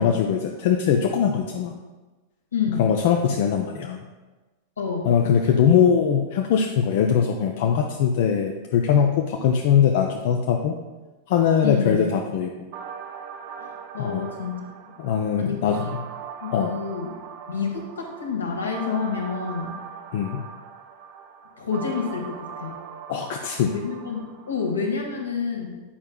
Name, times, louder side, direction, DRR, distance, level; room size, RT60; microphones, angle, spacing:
voice 1, 0.0-1.7 2.8-4.0 5.0-10.8 11.3-12.5 14.0-14.2 15.0-15.8 16.5-16.7 20.1-20.4 23.1-23.8, left 7 dB, 50° left, 2 dB, 0.4 m, -21 dB
voice 2, 2.5-3.0 4.8-5.2 11.6-12.0 13.6-14.7 15.4-15.6 16.4-17.2 17.5-19.8 21.6-22.8 23.7-25.8, left 5 dB, 75° left, 1 dB, 1.1 m, -28 dB
sound 1, 12.7-24.7, right 7 dB, 45° right, 0.5 m, -40 dB
8.5 x 5.4 x 2.2 m, 1.2 s
figure-of-eight pair, 90°, 0 cm